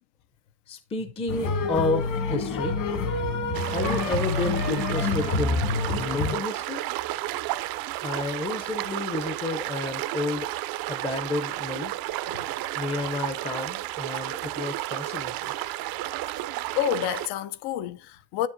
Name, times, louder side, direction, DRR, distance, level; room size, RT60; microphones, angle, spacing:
voice 1, 0.7-2.8 3.7-5.8 6.0-6.8 8.0-10.5 10.9-11.9 12.8-15.5, left 3 dB, 15° left, 0.5 m, -31 dB
sound 1, 1.3-6.4, left 3 dB, 55° left, 1.7 m, -27 dB
sound 2, 3.5-17.3, right 15 dB, 65° right, 0.5 m, -32 dB
voice 2, 16.7-18.5, left 10 dB, 85° left, 0.7 m, -29 dB
9.8 x 7.3 x 2.6 m
cardioid pair, 160°, 39 cm